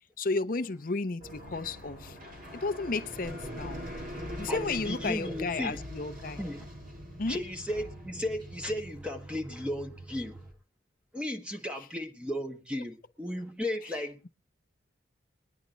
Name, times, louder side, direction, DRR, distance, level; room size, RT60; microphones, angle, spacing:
voice 1, 0.2-2.2 2.5-3.8 4.4-6.4 7.2-7.4, left 3 dB, 45° left, 0.7 m, -33 dB
sound 1, 1.2-10.5, equal, 45° right, 2.9 m, -43 dB
voice 2, 4.5-5.8 6.4-6.7 7.3-10.5 11.1-14.3, left 1 dB, 5° right, 1.4 m, -35 dB
22.0 x 9.7 x 3.9 m
head